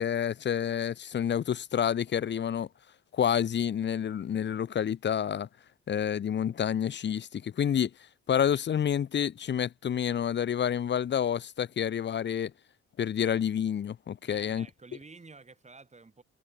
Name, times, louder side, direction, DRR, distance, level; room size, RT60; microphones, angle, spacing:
voice 1, 0.0-2.7 3.1-5.5 5.9-7.9 8.3-12.5 13.0-14.7, left 9 dB, 35° left, 0.6 m, -29 dB
voice 2, 14.2-16.2, right 3 dB, 20° right, 2.5 m, -51 dB
cardioid pair, 90°, 30 cm